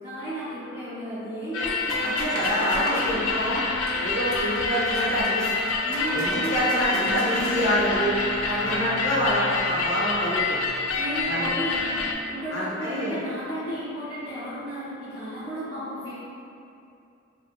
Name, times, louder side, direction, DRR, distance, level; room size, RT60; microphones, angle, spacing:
voice 1, 0.0-3.0 5.8-7.2 8.4-9.2 11.0-11.8 12.2-16.1, equal, 25° right, -13 dB, 1.4 m, -34 dB
sound 1, 1.5-12.1, left 3 dB, 75° left, 0.3 m, -27 dB
sound 2, 1.9-3.1 3.9-4.0 4.2-4.4 4.7-5.3 5.7-7.5, right 2 dB, 90° right, 0.6 m, -36 dB
voice 2, 2.0-3.6 4.0-5.5 6.1-8.1 8.6-10.6 11.3-11.5 12.5-13.1, equal, 60° left, -9 dB, 0.9 m, -26 dB
3.1 x 2.8 x 2.7 m, 2.5 s
head